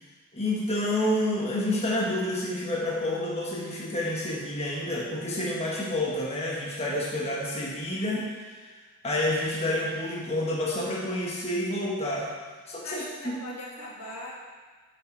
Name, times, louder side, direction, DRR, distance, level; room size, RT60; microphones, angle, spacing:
voice 1, 0.3-8.3 9.0-12.3 12.7-13.4, left 1 dB, 30° left, -5 dB, 1.4 m, -29 dB
voice 2, 12.8-14.3, left 1 dB, 75° left, -3 dB, 1.9 m, -40 dB
8.1 x 6.8 x 4.7 m, 1.4 s
head